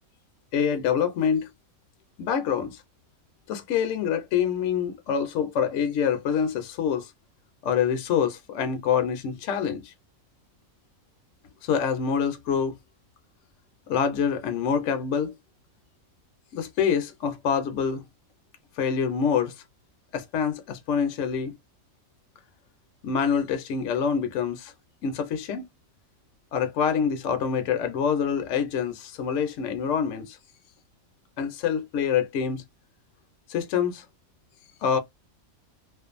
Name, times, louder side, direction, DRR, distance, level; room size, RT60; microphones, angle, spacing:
voice 1, 0.5-1.5 2.2-2.8 3.5-7.1 7.6-9.9 11.6-12.8 13.9-15.3 16.5-18.0 18.8-19.5 20.1-21.5 23.0-24.7 25.0-25.6 26.5-30.4 31.4-32.6 33.5-34.0 34.8-35.0, left 7 dB, 65° left, 0.9 m, -26 dB
2.5 x 2.3 x 2.4 m
omnidirectional pair, 1.5 m